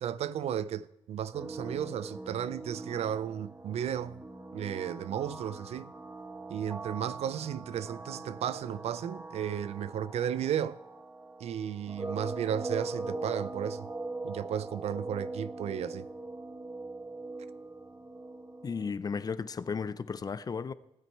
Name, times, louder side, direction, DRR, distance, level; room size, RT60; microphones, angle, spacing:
voice 1, 0.0-4.2 4.5-5.9 6.5-10.8 11.4-13.9 14.2-16.1, right 9 dB, 70° right, 0.4 m, -34 dB
sound 1, 1.3-18.9, right 2 dB, 20° right, 1.1 m, -41 dB
voice 2, 18.6-20.7, left 5 dB, 35° left, 0.5 m, -34 dB
16.5 x 9.3 x 4.4 m
cardioid pair, 90°, 11 cm